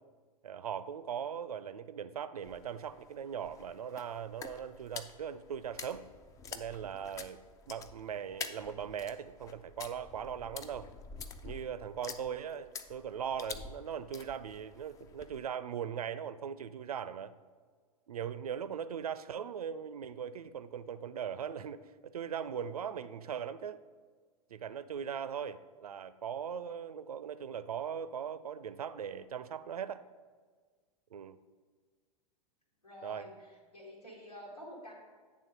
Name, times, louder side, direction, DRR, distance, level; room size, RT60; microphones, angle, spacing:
voice 1, 0.4-6.1 6.5-7.4 7.7-10.9 11.4-17.3 18.1-23.8 24.5-30.0 31.1-31.4 33.0-33.3, right 8 dB, 70° right, 14 dB, 0.4 m, -39 dB
sound 1, 2.4-15.5, left 5 dB, 15° left, 0.3 m, -48 dB
voice 2, 32.8-34.9, equal, 85° left, -2 dB, 2.0 m, -49 dB
9.3 x 3.5 x 5.2 m, 1.5 s
figure-of-eight pair, 90°, 20 cm